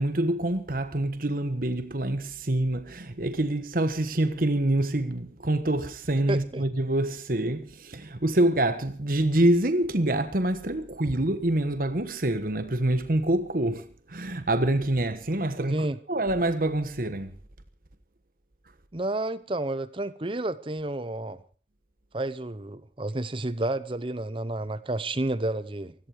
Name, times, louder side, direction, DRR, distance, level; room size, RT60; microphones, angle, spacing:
voice 1, 0.0-17.3, right 1 dB, 50° right, 1.3 m, -26 dB
voice 2, 6.3-6.6 15.7-16.0 18.9-21.4 22.1-25.9, right 2 dB, 30° right, 0.8 m, -30 dB
17.0 x 14.5 x 4.9 m
head